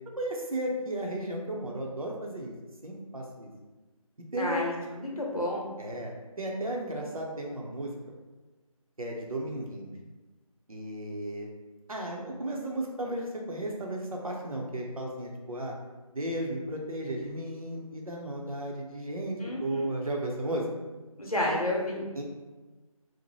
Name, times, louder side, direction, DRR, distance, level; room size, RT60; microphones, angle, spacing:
voice 1, 0.2-2.5 2.8-3.5 4.3-4.6 5.8-7.9 9.0-9.9 10.7-11.5 11.9-15.7 16.1-20.6 22.2-22.3, right 1 dB, 70° right, -1 dB, 0.7 m, -34 dB
voice 2, 4.4-5.7 19.4-19.9 21.2-22.1, left 1 dB, 80° left, -2 dB, 0.8 m, -31 dB
2.7 x 2.1 x 3.0 m, 1.2 s
figure-of-eight pair, 165°, 19 cm